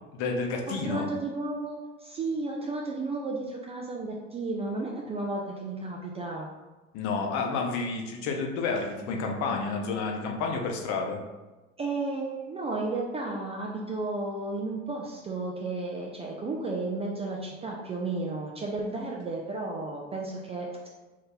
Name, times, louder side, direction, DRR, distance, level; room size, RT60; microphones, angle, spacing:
voice 1, 0.1-1.1 6.9-11.2, left 4 dB, 50° left, 2 dB, 0.8 m, -30 dB
voice 2, 0.7-6.5 11.8-20.9, right 3 dB, 15° right, -1 dB, 0.3 m, -33 dB
2.7 x 2.7 x 3.7 m, 1.1 s
hypercardioid pair, 80°, 37 cm